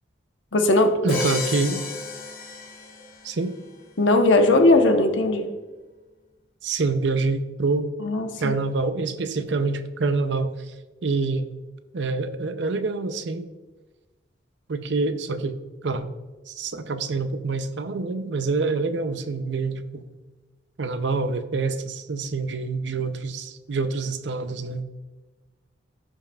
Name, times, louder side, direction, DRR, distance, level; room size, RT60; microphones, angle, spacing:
voice 1, 0.5-1.0 4.0-5.5 8.0-8.5, left 2 dB, 80° left, 5 dB, 1.0 m, -18 dB
voice 2, 1.0-1.8 3.2-3.5 6.6-7.9 8.4-10.5 11.0-11.5 11.9-13.5 14.7-15.6 15.8-16.1 16.5-20.0 20.8-24.8, right 3 dB, 70° right, 11 dB, 0.5 m, -26 dB
Crash cymbal, 1.1-3.3, left 3 dB, 45° left, 1.0 m, -32 dB
15.0 x 5.4 x 2.4 m, 1.2 s
head